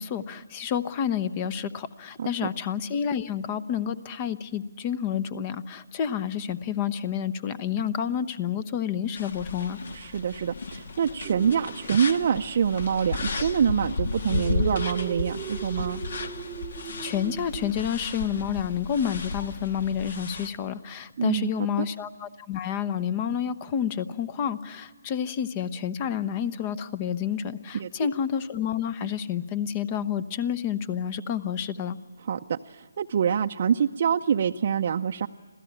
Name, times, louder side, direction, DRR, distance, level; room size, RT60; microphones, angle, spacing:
voice 1, 0.0-9.8 17.0-32.0, left 8 dB, 25° left, 15 dB, 0.8 m, -29 dB
voice 2, 2.2-2.5 9.9-16.0 21.2-21.5 27.7-28.1 32.3-35.3, right 7 dB, 45° right, 4 dB, 0.6 m, -26 dB
sound 1, 9.2-20.5, left 3 dB, 60° left, 1.7 m, -34 dB
sound 2, 11.2-12.5 14.3-17.7, right 10 dB, 15° right, 0.9 m, -40 dB
26.5 x 16.0 x 8.7 m, 1.4 s
figure-of-eight pair, 150°, 0 cm